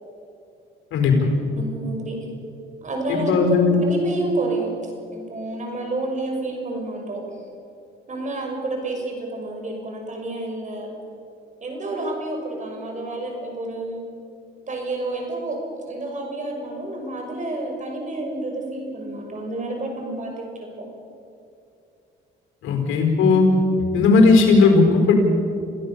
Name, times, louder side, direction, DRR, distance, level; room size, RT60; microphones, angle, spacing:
voice 1, 0.9-1.3 3.1-3.8 22.6-23.5 23.9-25.1, left 4 dB, 85° left, 3 dB, 4.9 m, -16 dB
voice 2, 1.6-2.2 2.8-3.3 3.8-4.7 5.1-7.2 8.1-10.9 11.6-14.1 14.7-15.6 15.9-20.9, right 2 dB, 40° right, 2 dB, 6.2 m, -29 dB
27.5 x 16.0 x 7.1 m, 2.6 s
cardioid pair, 90°, 20 cm